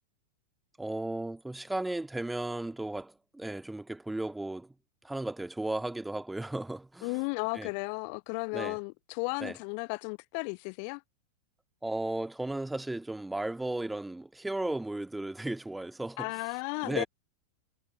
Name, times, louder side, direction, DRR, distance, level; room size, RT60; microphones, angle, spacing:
voice 1, 0.8-4.7 5.0-7.2 7.5-7.7 8.5-8.8 9.4-9.6 11.8-16.3 16.8-17.1, right 2 dB, 5° right, 1.8 m, -35 dB
voice 2, 7.0-11.0 16.2-17.0, left 40 dB or more, 45° left, 0.8 m, -34 dB
figure-of-eight pair, 90°, 0 cm